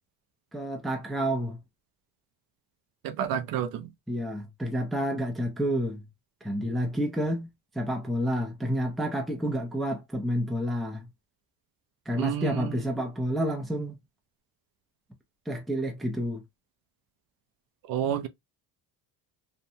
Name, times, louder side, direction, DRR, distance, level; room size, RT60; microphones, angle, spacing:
voice 1, 0.5-1.6 4.1-6.0 6.4-7.5 7.7-11.0 12.1-14.0 15.5-16.4, equal, ahead, 0.4 m, -29 dB
voice 2, 3.0-3.9 12.1-12.8 17.9-18.3, right 9 dB, 65° right, 0.5 m, -30 dB
2.8 x 2.1 x 2.6 m
cardioid pair, 150°, 39 cm